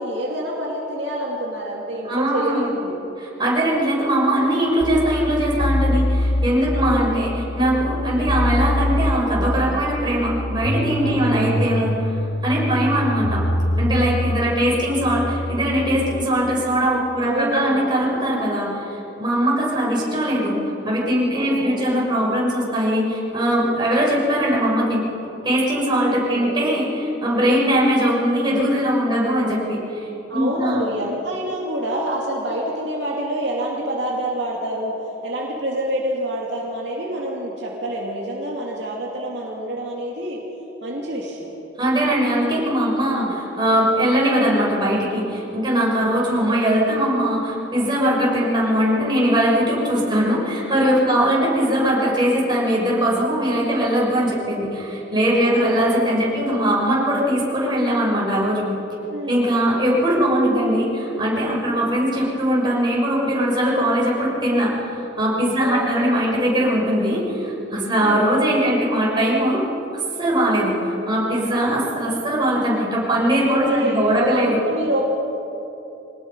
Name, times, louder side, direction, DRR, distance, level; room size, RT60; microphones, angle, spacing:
voice 1, 0.0-3.0 6.7-7.2 8.0-8.3 11.0-11.7 12.7-13.0 14.4-15.0 17.2-17.9 21.4-22.0 26.0-26.6 29.1-29.6 30.3-35.0 35.2-40.4 40.8-41.5 43.1-43.4 46.1-46.6 48.2-48.4 51.0-51.3 55.3-55.8 59.1-59.5 65.6-66.0 68.0-68.3 73.7-75.1, right 1 dB, 65° right, -3 dB, 2.7 m, -27 dB
voice 2, 2.0-2.6 3.2-12.1 12.4-13.5 13.8-18.8 19.2-20.6 20.8-25.0 25.4-30.8 41.8-58.7 59.3-69.6 70.2-74.6, equal, 25° right, -5 dB, 6.3 m, -20 dB
sound 1, 4.8-16.2, left 1 dB, 50° left, 1.0 m, -24 dB
24.5 x 19.5 x 5.6 m, 3.0 s
head